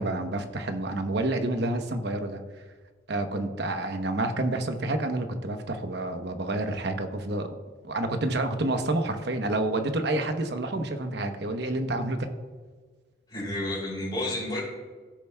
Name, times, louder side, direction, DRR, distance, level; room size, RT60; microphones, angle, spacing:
voice 1, 0.0-2.4 3.1-7.6 7.8-12.3, right 2 dB, 60° right, 6 dB, 0.9 m, -29 dB
voice 2, 13.3-14.6, left 1 dB, 25° left, -9 dB, 2.8 m, -31 dB
16.5 x 7.0 x 2.2 m, 1.5 s
head